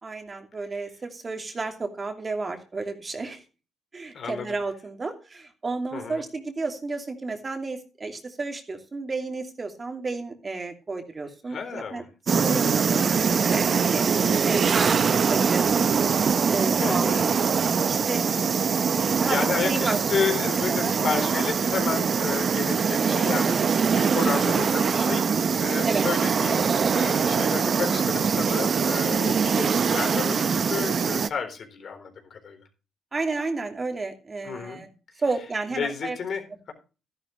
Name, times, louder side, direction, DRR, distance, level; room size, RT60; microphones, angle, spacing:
voice 1, 0.0-3.4 3.9-12.0 12.4-13.1 13.5-15.7 16.5-17.1 17.9-18.3 19.2-19.4 19.6-20.0 20.7-20.9 25.8-26.0 30.3-30.5 33.1-34.9 35.2-36.2, right 3 dB, 30° right, 4 dB, 2.7 m, -32 dB
voice 2, 4.1-4.6 5.9-6.2 11.5-12.1 12.3-12.8 14.2-14.3 16.8-17.3 19.3-25.3 25.6-32.6 34.4-34.8 35.8-36.4, left 6 dB, 55° left, 5 dB, 3.9 m, -31 dB
sound 1, 12.3-31.3, right 6 dB, 45° right, 0.8 m, -23 dB
13.0 x 11.5 x 3.2 m, 0.34 s
cardioid pair, 90°, 0 cm